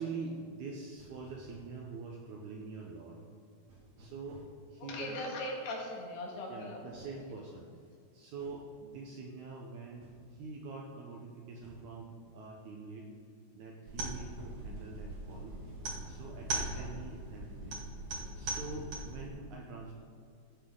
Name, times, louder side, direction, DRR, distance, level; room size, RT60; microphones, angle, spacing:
voice 1, 0.0-3.2 4.0-5.2 6.5-7.7 8.1-13.1 13.5-15.6 16.1-17.8 18.3-19.9, right 4 dB, 90° right, 0 dB, 1.7 m, -45 dB
sound 1, 0.8-1.7 3.7-4.5 6.9-7.2 8.4-8.6 10.0-10.2 11.6-11.9 14.0-16.4 18.1-18.8, right 2 dB, 35° right, 2.0 m, -56 dB
voice 2, 4.9-6.9, left 1 dB, 80° left, -2 dB, 4.0 m, -39 dB
sound 2, 13.9-19.3, right 2 dB, 50° right, 3.0 m, -40 dB
16.0 x 7.8 x 3.8 m, 2.3 s
omnidirectional pair, 4.7 m